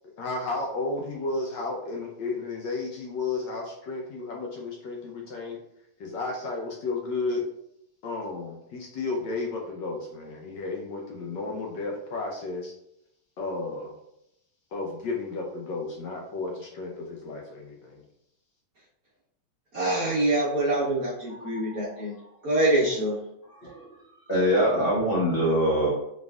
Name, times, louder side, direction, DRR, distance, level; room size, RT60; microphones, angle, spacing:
voice 1, 0.2-5.6 6.0-7.4 8.0-12.7 13.4-14.0 14.7-18.0, left 3 dB, 75° left, 0 dB, 1.1 m, -33 dB
voice 2, 19.7-22.1 22.4-23.1, right 1 dB, 55° right, -7 dB, 1.0 m, -25 dB
voice 3, 21.3-22.0 23.5-23.9 24.3-25.9, equal, 55° left, -6 dB, 0.6 m, -25 dB
4.0 x 3.6 x 2.3 m, 0.81 s
omnidirectional pair, 2.3 m